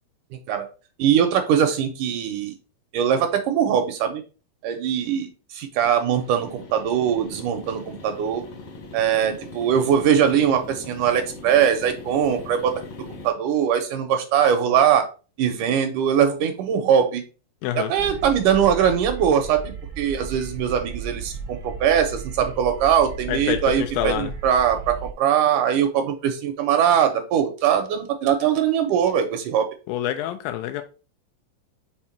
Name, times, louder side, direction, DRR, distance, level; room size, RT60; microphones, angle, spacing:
voice 1, 1.0-2.5 2.9-4.2 4.6-8.4 8.9-12.7 13.1-15.1 15.4-17.2 17.8-29.7, right 8 dB, 75° right, 6 dB, 2.0 m, -21 dB
sound 1, 5.9-13.3, left 3 dB, 60° left, 1.6 m, -40 dB
voice 2, 17.6-17.9 23.3-24.3 29.9-30.8, left 12 dB, 85° left, 8 dB, 2.4 m, -27 dB
sound 2, 18.0-25.1, right 4 dB, 50° right, 1.1 m, -35 dB
5.8 x 4.3 x 4.3 m, 0.35 s
omnidirectional pair, 4.1 m